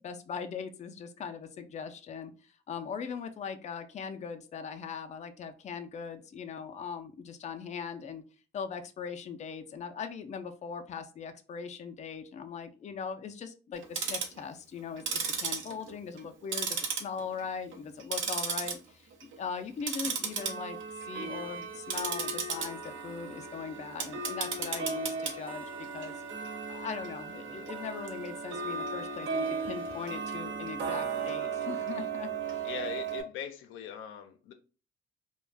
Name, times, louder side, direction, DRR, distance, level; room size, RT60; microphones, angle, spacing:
voice 1, 0.0-8.2 8.5-20.8 21.0-26.1 26.7-32.7, left 6 dB, 35° left, 0.4 m, -40 dB
Tick-tock, 13.8-14.4 15.0-16.3 16.5-17.4 17.7-18.7 19.1-19.4 19.8-33.2, right 5 dB, 75° right, 0.7 m, -35 dB
voice 2, 32.6-34.5, left 9 dB, 90° left, 0.5 m, -40 dB
2.4 x 2.2 x 3.2 m
cardioid pair, 90°, 20 cm